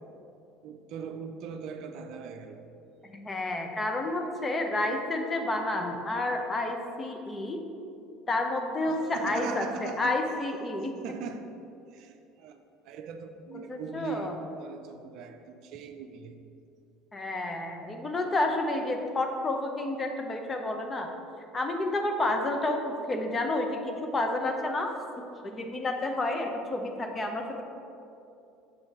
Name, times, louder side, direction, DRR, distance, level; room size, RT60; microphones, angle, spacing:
voice 1, 0.6-2.7 8.9-10.2 10.8-11.5 11.9-16.4, right 6 dB, 60° right, 7 dB, 0.5 m, -41 dB
voice 2, 3.1-7.6 8.3-10.9 13.5-14.4 17.1-21.1 21.5-24.9 25.4-27.6, left 2 dB, 25° left, 4 dB, 0.9 m, -30 dB
6.6 x 5.6 x 4.4 m, 2.7 s
hypercardioid pair, 70°, 0 cm